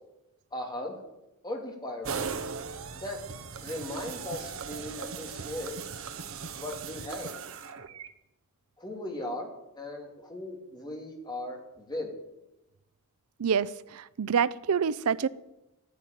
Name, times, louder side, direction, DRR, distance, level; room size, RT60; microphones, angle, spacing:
voice 1, 0.5-1.0 1.4-2.3 2.9-3.2 3.6-5.7 6.5-7.3 8.8-9.5 9.7-12.1, left 1 dB, 20° left, 2.9 m, -37 dB
sound 1, 2.0-8.1, right 6 dB, 60° right, 0.9 m, -38 dB
voice 2, 13.4-15.3, right 7 dB, 75° right, 0.5 m, -27 dB
13.5 x 10.0 x 9.2 m
head